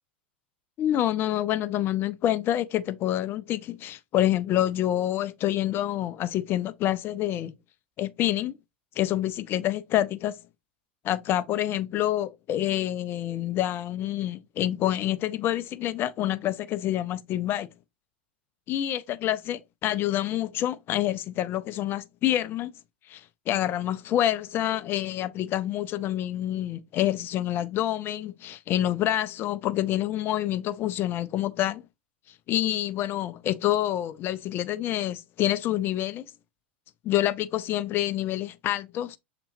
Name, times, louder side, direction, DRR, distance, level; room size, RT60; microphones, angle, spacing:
voice 1, 0.8-7.5 8.0-8.5 9.0-10.4 11.0-17.7 18.7-22.7 23.1-31.8 32.5-36.3 37.0-39.2, left 13 dB, 40° left, 0.4 m, -27 dB
6.7 x 2.9 x 2.6 m
hypercardioid pair, 90°, 6 cm